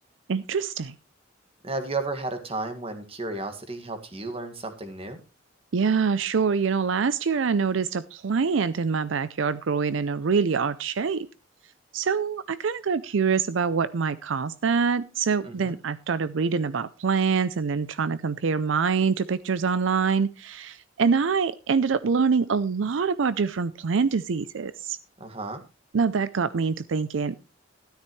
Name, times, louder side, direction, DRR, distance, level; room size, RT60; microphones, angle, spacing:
voice 1, 0.3-1.0 5.7-11.3 11.9-25.0 25.9-27.4, right 5 dB, 75° right, 15 dB, 0.5 m, -25 dB
voice 2, 1.6-5.2 15.4-15.8 25.2-25.6, right 2 dB, 30° right, 7 dB, 1.9 m, -33 dB
13.0 x 12.5 x 3.1 m, 0.28 s
head